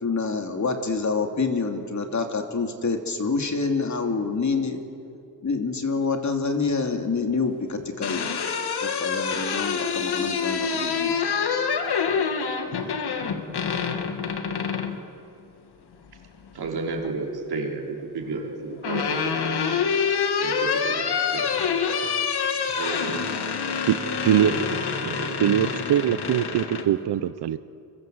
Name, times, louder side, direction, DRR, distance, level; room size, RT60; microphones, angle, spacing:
voice 1, 0.0-4.8 5.4-8.3 8.8-11.1, left 4 dB, 45° left, 4 dB, 2.8 m, -27 dB
sound 1, 7.7-15.0 16.4-17.1 18.3-26.9, left 6 dB, 80° left, 2.2 m, -26 dB
voice 2, 16.5-19.8 20.4-21.5 22.8-23.3 24.4-25.5 27.0-27.1, right 3 dB, 75° right, 0 dB, 4.5 m, -33 dB
voice 3, 25.4-27.6, right 11 dB, 90° right, 13 dB, 0.8 m, -22 dB
29.0 x 23.0 x 7.9 m, 2.6 s
cardioid pair, 95°, 39 cm